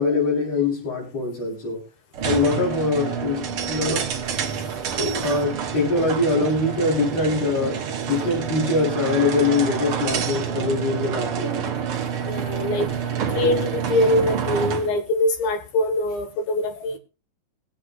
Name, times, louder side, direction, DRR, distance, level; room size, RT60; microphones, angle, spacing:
voice 1, 0.0-1.8 2.2-4.1 5.2-7.8 8.1-11.8 13.3-13.4, left 3 dB, 45° left, -1 dB, 5.0 m, -23 dB
sound 1, 2.1-15.0, right 7 dB, 60° right, 1.4 m, -28 dB
voice 2, 5.0-5.3 12.2-12.9 13.3-17.0, left 1 dB, 85° left, 6 dB, 3.2 m, -23 dB
23.0 x 7.9 x 2.4 m, 0.31 s
omnidirectional pair, 4.0 m